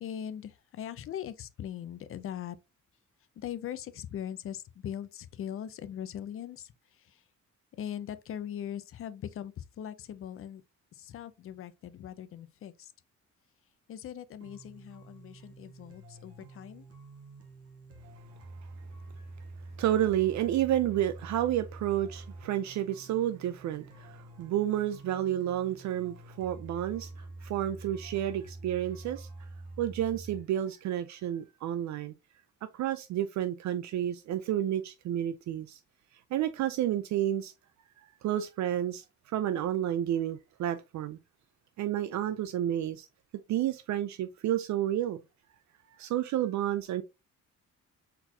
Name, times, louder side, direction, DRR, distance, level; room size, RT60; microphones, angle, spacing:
voice 1, 0.0-2.6 3.4-6.7 7.1-7.2 7.8-10.6 10.9-12.9 13.9-16.9, left 10 dB, 45° left, 0.5 m, -40 dB
sound 1, 14.4-30.4, right 2 dB, 50° right, 1.6 m, -47 dB
voice 2, 19.8-29.3 29.8-32.1 32.7-35.8 36.3-37.5 38.2-41.2 41.8-43.1 43.5-45.2 46.0-47.0, right 12 dB, 65° right, 0.5 m, -30 dB
4.4 x 4.0 x 2.7 m
cardioid pair, 155°, 30 cm